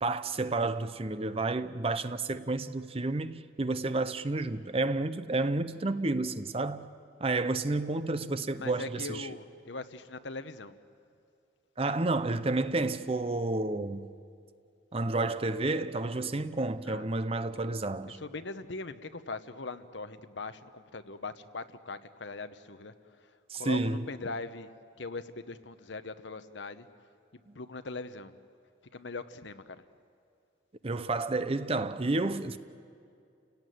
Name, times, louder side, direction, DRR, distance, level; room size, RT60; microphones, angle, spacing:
voice 1, 0.0-6.9 7.2-9.3 11.8-14.1 14.9-18.2 23.5-24.1 30.8-32.6, right 2 dB, 30° right, 0.7 m, -30 dB
voice 2, 8.5-10.7 16.8-17.1 18.1-26.9 27.3-28.3 28.9-29.8, left 3 dB, 70° left, 1.0 m, -41 dB
29.5 x 17.5 x 9.3 m
head